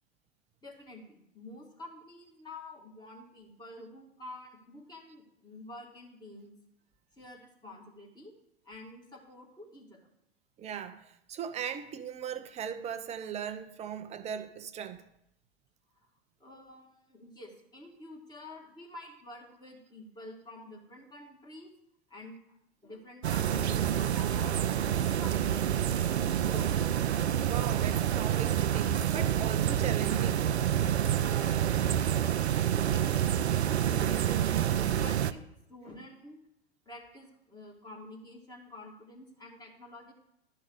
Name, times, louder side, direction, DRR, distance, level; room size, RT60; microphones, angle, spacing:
voice 1, 0.6-6.5 7.2-8.3 8.7-10.1 16.4-21.7 22.1-22.4 22.8-24.6 24.9-25.9 26.4-26.8 32.3-33.3 33.9-35.4 35.7-36.4 36.9-40.1, left 1 dB, 10° left, 2.1 m, -48 dB
voice 2, 10.6-15.0 27.5-30.5, right 8 dB, 20° right, 0.6 m, -38 dB
sound 1, 23.2-35.3, right 10 dB, 80° right, 0.5 m, -28 dB
12.5 x 4.6 x 6.4 m
figure-of-eight pair, 100°, 33 cm